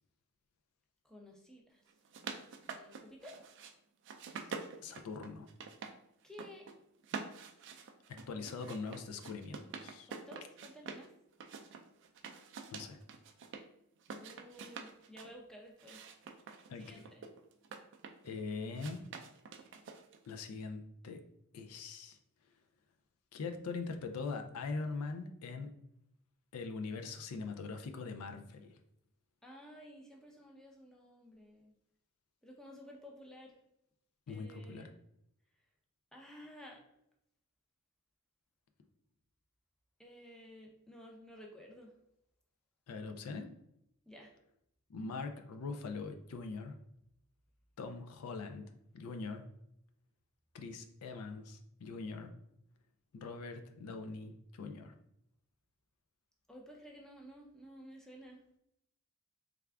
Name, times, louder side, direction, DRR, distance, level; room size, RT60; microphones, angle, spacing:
voice 1, 1.0-1.8 2.7-3.4 6.2-6.7 10.1-11.1 14.1-16.0 16.8-17.2 29.4-31.7 32.4-33.5 34.3-34.9 36.1-36.8 40.0-41.9 44.1-44.3 56.5-58.4, equal, 5° left, -1 dB, 0.5 m, -53 dB
sound 1, 1.9-3.7 4.0-5.9 6.2-6.7 7.0-11.1 11.4-13.6 14.0-15.3 15.8-18.3 18.7-20.3, right 5 dB, 55° right, 0.4 m, -47 dB
voice 2, 4.8-5.5 8.1-10.1 12.7-13.0 16.7-17.0 18.2-19.0 20.3-21.2 21.5-22.2 23.3-25.7 26.5-28.8 34.3-34.9 42.9-43.5 44.9-46.8 47.8-49.4 50.5-52.3 53.1-54.9, left 4 dB, 85° left, 6 dB, 0.4 m, -42 dB
3.4 x 2.4 x 3.3 m, 0.78 s
head